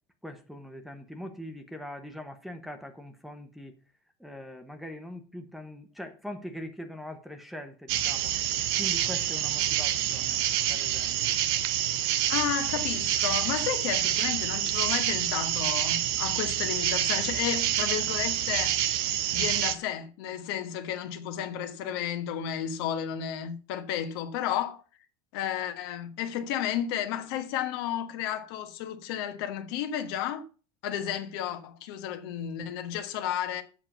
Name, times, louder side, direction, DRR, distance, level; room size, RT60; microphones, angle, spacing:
voice 1, 0.2-3.8 4.2-8.4 8.8-10.4 10.7-11.4, equal, ahead, 0.9 m, -42 dB
sound 1, 7.9-19.7, right 11 dB, 70° right, 1.0 m, -27 dB
voice 2, 12.3-18.8 19.3-24.8 25.3-30.4 30.8-33.6, left 10 dB, 70° left, 1.4 m, -32 dB
7.8 x 6.3 x 7.2 m
cardioid pair, 160°, 13 cm